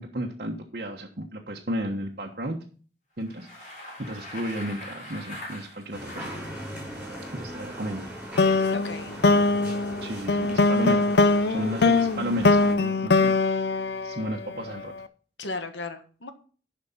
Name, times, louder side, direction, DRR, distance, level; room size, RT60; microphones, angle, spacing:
voice 1, 0.0-2.6 3.2-3.5 4.0-6.3 7.3-8.1 9.2-9.7 10.0-11.2 11.5-13.3 14.0-14.9, equal, 55° right, -1 dB, 1.3 m, -33 dB
Bicycle, 3.2-6.5, left 1 dB, 40° left, 6.2 m, -41 dB
sound 1, 5.9-12.7, equal, 5° right, 5.6 m, -39 dB
sound 2, 8.4-14.8, left 3 dB, 65° left, 0.5 m, -22 dB
voice 2, 8.7-9.2 15.4-16.3, left 3 dB, 90° left, 8 dB, 1.4 m, -35 dB
10.5 x 5.8 x 5.8 m, 0.42 s
head